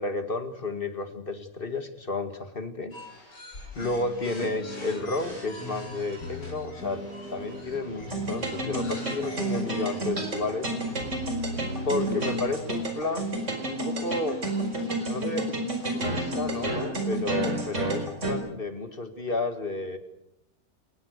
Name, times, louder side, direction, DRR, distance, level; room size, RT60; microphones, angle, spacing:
voice 1, 0.0-2.9 3.7-10.7 11.8-14.4 15.0-15.7 15.9-20.0, left 3 dB, 30° left, 8 dB, 2.3 m, -32 dB
sound 1, 2.9-16.7, left 1 dB, 80° left, 7.7 m, -48 dB
sound 2, 3.8-13.2, left 1 dB, 60° left, 3.7 m, -40 dB
sound 3, 8.1-18.3, right 1 dB, 40° right, 5.0 m, -30 dB
28.0 x 20.0 x 6.7 m, 0.83 s
omnidirectional pair, 1.9 m